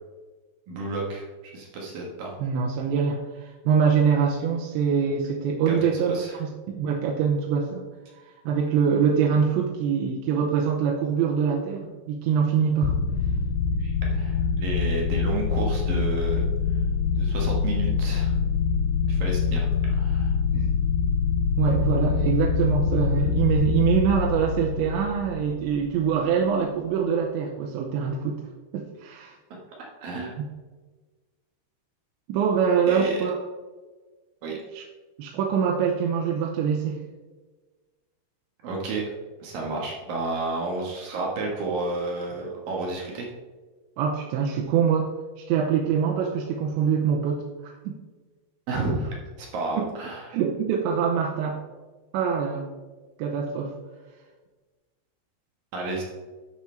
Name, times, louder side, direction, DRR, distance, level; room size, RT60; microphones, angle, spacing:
voice 1, 0.7-1.3 1.5-2.3 5.7-6.4 13.8-16.5 17.1-18.3 19.1-19.7 20.0-20.4 29.8-30.3 32.9-33.2 34.4-34.6 38.6-39.0 39.4-43.3 48.7-50.4 55.7-56.0, right 3 dB, 65° right, -2 dB, 2.6 m, -31 dB
voice 2, 2.4-6.1 6.4-7.8 8.2-13.0 20.5-20.7 21.6-28.4 28.7-29.4 30.4-30.5 32.3-33.3 34.7-34.8 35.2-37.0 44.0-45.1 45.4-48.0 49.8-49.9 50.3-51.6 52.1-52.7 53.2-53.7, right 7 dB, 85° right, 0 dB, 3.0 m, -24 dB
sound 1, 12.8-26.1, left 6 dB, 85° left, 2.4 m, -25 dB
11.0 x 6.2 x 4.4 m, 1.3 s
omnidirectional pair, 5.1 m